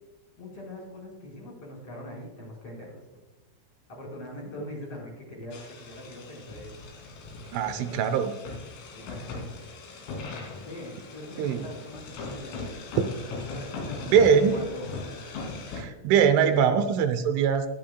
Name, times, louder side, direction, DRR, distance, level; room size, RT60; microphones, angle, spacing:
voice 1, 0.4-3.0 3.9-6.7 7.4-8.1 8.9-9.5 10.6-12.6 13.5-14.9, left 1 dB, 30° left, -2 dB, 5.0 m, -42 dB
sound 1, 5.5-15.8, left 3 dB, 75° left, 5.4 m, -39 dB
voice 2, 7.5-8.3 11.4-11.6 13.0-13.1 14.1-14.6 15.7-17.7, right 7 dB, 80° right, 8 dB, 3.0 m, -22 dB
23.0 x 10.5 x 2.3 m, 1.1 s
omnidirectional pair, 6.0 m